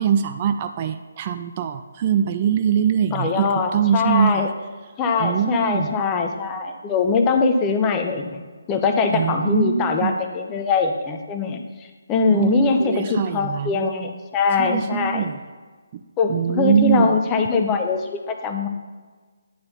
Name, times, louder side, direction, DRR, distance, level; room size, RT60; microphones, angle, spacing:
voice 1, 0.0-4.5 5.2-6.0 9.1-10.2 12.3-13.9 14.6-15.4 15.9-16.0 16.3-17.2, right 8 dB, 30° right, 8 dB, 0.4 m, -22 dB
voice 2, 3.1-4.5 5.0-8.4 8.7-15.3 16.2-18.7, left 4 dB, 20° left, 5 dB, 0.7 m, -22 dB
9.5 x 4.3 x 5.7 m, 1.4 s
figure-of-eight pair, 145°, 0 cm